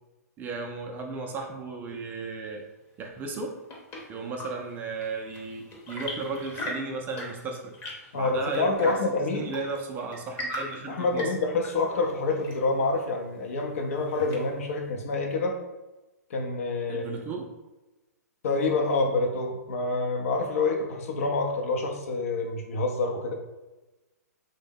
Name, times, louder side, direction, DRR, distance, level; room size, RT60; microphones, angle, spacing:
voice 1, 0.4-2.6 3.0-3.6 4.1-7.7 8.1-9.0 9.3-11.3 16.9-17.5, right 3 dB, 20° right, 2 dB, 0.4 m, -35 dB
Chirp tweet / Engine / Tap, 3.2-14.8, left 1 dB, 25° left, 0.8 m, -41 dB
voice 2, 8.1-9.5 10.9-15.6 16.3-17.2 18.4-23.3, left 3 dB, 55° left, 3 dB, 0.6 m, -27 dB
3.4 x 2.1 x 3.5 m, 1.1 s
figure-of-eight pair, 115°, 9 cm